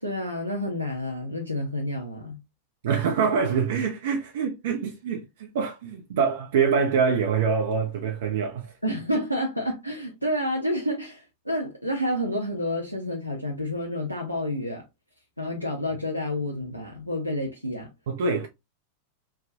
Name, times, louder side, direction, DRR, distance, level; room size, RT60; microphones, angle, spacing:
voice 1, 0.0-2.4 8.8-14.8 15.4-17.9, left 1 dB, 90° left, 0.6 m, -29 dB
voice 2, 2.8-8.7 18.1-18.5, right 6 dB, 55° right, 0.4 m, -25 dB
3.3 x 2.1 x 2.6 m
figure-of-eight pair, 90°, 0 cm